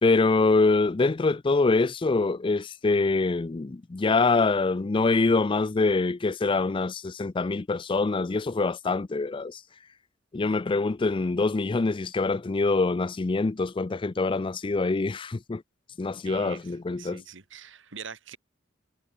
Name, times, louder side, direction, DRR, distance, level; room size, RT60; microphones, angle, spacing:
voice 1, 0.0-9.6 10.3-15.6 16.0-17.2, left 3 dB, 25° left, 0.4 m, -25 dB
voice 2, 16.3-18.4, right 6 dB, 60° right, 2.0 m, -44 dB
head